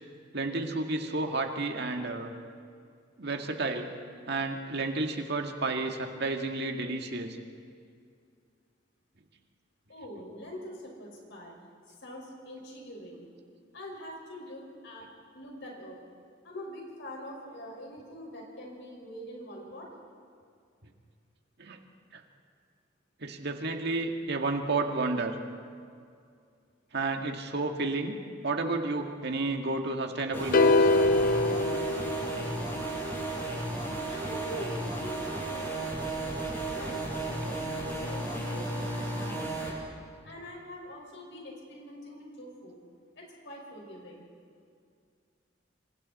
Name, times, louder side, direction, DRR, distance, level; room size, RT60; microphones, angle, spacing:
voice 1, 0.3-2.3 3.2-3.9 4.3-7.4 21.6-21.8 22.1-22.2 23.2-25.4 26.9-28.2 28.4-30.9, right 3 dB, 60° right, 4 dB, 1.9 m, -31 dB
voice 2, 9.9-11.5 12.0-13.3 13.7-15.1 15.3-16.0 16.4-19.9 34.1-37.1 37.4-39.8 40.2-42.8 43.2-44.2, equal, 65° left, -1 dB, 5.4 m, -44 dB
sound 1, 30.3-39.7, right 2 dB, 10° left, 7.0 m, -34 dB
sound 2, 30.5-32.8, left 2 dB, 45° left, 0.6 m, -24 dB
27.0 x 26.0 x 4.3 m, 2.3 s
head